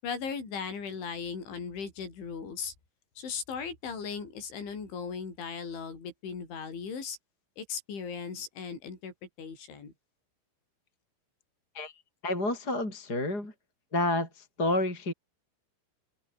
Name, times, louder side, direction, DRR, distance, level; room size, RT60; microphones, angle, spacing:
voice 1, 0.0-2.7 3.2-7.2 7.6-9.9, left 6 dB, 65° left, 9.5 m, -37 dB
voice 2, 12.2-13.5 13.9-15.1, left 2 dB, 20° left, 7.5 m, -29 dB
open air
omnidirectional pair, 5.9 m